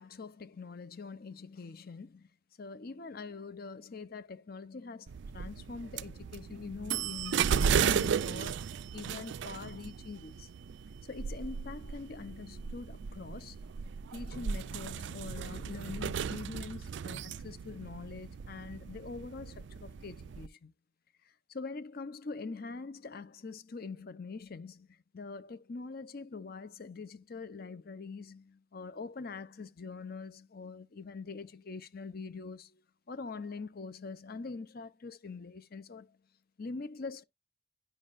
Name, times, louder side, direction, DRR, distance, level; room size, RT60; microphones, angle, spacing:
voice 1, 0.0-2.3 2.6-8.6 8.9-10.5 11.0-13.6 14.1-20.7 21.2-32.8 33.1-36.2 36.6-37.2, left 4 dB, 45° left, 0.6 m, -44 dB
sound 1, 5.1-20.5, right 7 dB, 60° right, 0.3 m, -35 dB
10.5 x 5.4 x 2.5 m
head